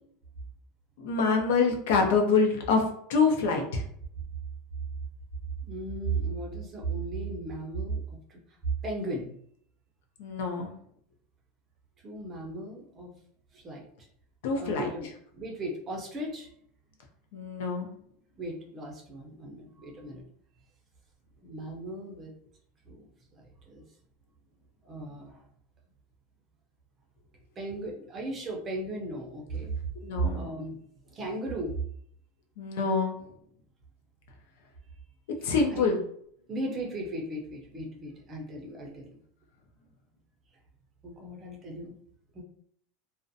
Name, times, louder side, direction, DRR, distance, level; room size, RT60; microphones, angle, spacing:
voice 1, 1.0-2.8 3.1-3.8 10.2-10.7 14.4-14.9 17.3-17.9 30.0-30.5 32.6-33.2 35.4-36.0, left 4 dB, 75° left, 2 dB, 0.5 m, -26 dB
voice 2, 5.6-8.0 8.3-8.4 8.8-9.3 12.0-13.1 13.5-13.9 14.6-15.1 15.3-16.5 18.4-20.2 21.4-22.3 22.8-23.1 23.3-23.9 24.8-25.4 27.6-29.7 30.2-30.8 31.1-31.7 35.4-35.9 36.5-39.1 41.0-42.0 42.3-42.4, right 2 dB, 20° right, -1 dB, 0.6 m, -36 dB
2.4 x 2.1 x 2.6 m, 0.66 s
supercardioid pair, 160°, 0 cm